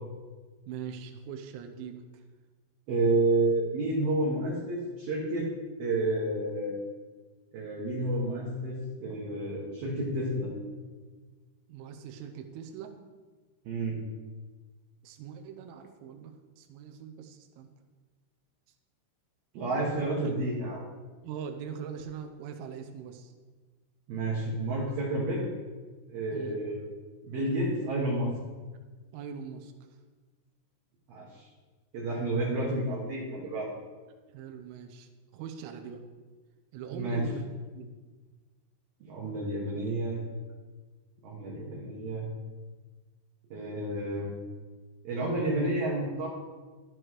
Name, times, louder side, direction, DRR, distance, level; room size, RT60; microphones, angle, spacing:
voice 1, 0.7-2.0 11.7-13.0 15.0-17.7 20.0-20.1 21.2-23.3 26.3-26.6 29.1-29.7 34.3-36.0 36.7-37.5 37.7-37.9, right 7 dB, 85° right, 5 dB, 3.3 m, -41 dB
voice 2, 2.9-5.5 5.8-6.7 7.5-8.8 9.0-10.5 13.6-14.0 19.5-20.8 24.1-25.5 26.1-26.8 27.2-28.3 31.1-31.5 31.9-33.7 36.9-37.2 39.0-40.3 41.2-42.3 43.5-44.3 45.0-46.3, right 2 dB, 65° right, -4 dB, 2.7 m, -30 dB
13.0 x 8.0 x 3.1 m, 1.4 s
omnidirectional pair, 6.0 m